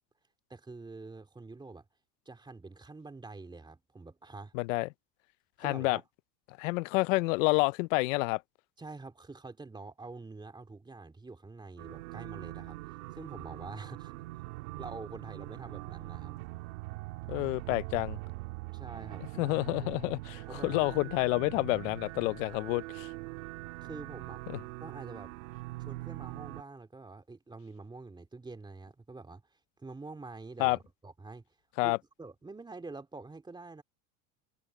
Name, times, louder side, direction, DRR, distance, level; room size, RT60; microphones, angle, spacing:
voice 1, 0.5-1.9 2.3-4.5 5.6-6.0 8.8-12.8 13.1-14.4 14.8-16.4 18.7-19.5 19.8-19.9 20.5-20.8 23.8-25.3 25.8-29.4 29.8-31.4 31.8-33.8, right 3 dB, 10° right, 2.4 m, -46 dB
voice 2, 4.5-4.9 5.6-6.0 6.6-8.4 17.3-18.2 19.4-23.1 30.6-30.8 31.8-32.0, left 24 dB, 80° left, 0.7 m, -29 dB
sound 1, 11.8-26.6, right 21 dB, 85° right, 1.7 m, -42 dB
supercardioid pair, 120°, 37 cm